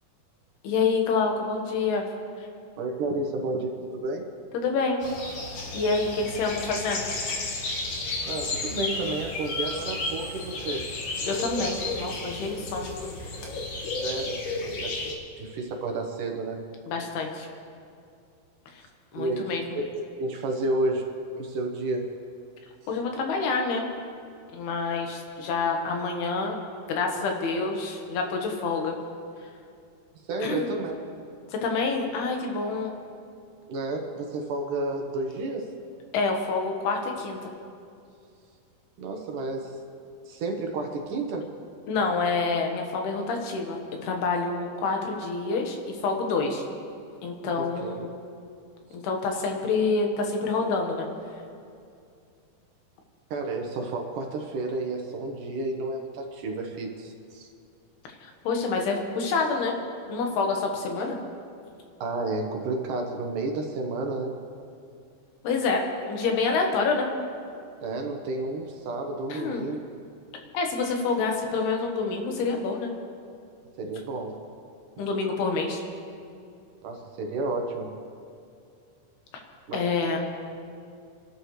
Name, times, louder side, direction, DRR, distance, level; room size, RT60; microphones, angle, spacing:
voice 1, 0.6-2.1 2.4-2.5 4.5-5.1 5.7-7.1 11.3-12.9 16.9-17.5 18.7-18.8 19.1-19.6 22.9-23.9 24.5-26.6 26.9-28.9 30.4-30.7 31.5-32.9 36.1-37.5 41.9-46.7 47.2-48.1 49.0-51.1 58.2-59.8 60.1-61.2 65.4-67.1 69.3-69.7 70.5-72.9 75.0-75.8 79.7-80.2, left 4 dB, 85° left, 2 dB, 3.5 m, -27 dB
voice 2, 2.8-4.2 8.2-10.9 14.0-15.0 15.4-16.6 19.2-21.1 21.4-22.1 30.3-31.0 33.7-35.7 39.0-39.7 40.3-41.5 47.6-48.1 53.3-57.5 62.0-64.4 67.8-69.8 73.8-74.4 76.8-77.9 79.7-79.8, right 2 dB, 65° right, 2 dB, 2.5 m, -31 dB
sound 1, 5.0-15.2, left 3 dB, 60° left, 2.9 m, -32 dB
27.5 x 12.0 x 3.3 m, 2.5 s
omnidirectional pair, 4.4 m